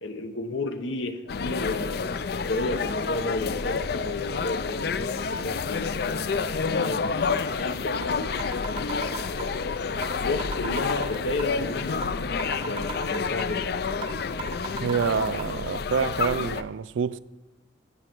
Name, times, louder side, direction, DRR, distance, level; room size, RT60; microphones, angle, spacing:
voice 1, 0.0-5.1 5.4-7.1 7.5-8.3 8.6-12.1 12.4-14.0, left 2 dB, 85° left, 1.1 m, -33 dB
sound 1, 1.3-16.6, left 5 dB, 55° left, 0.4 m, -29 dB
sound 2, 8.0-8.1 8.4-9.6 10.0-10.1 10.4-11.6 12.0-12.1 12.4-13.6 14.0-14.1 14.4-15.4, right 4 dB, 25° right, 0.7 m, -35 dB
voice 2, 14.8-17.2, right 6 dB, 80° right, 0.4 m, -27 dB
15.5 x 6.5 x 4.5 m
head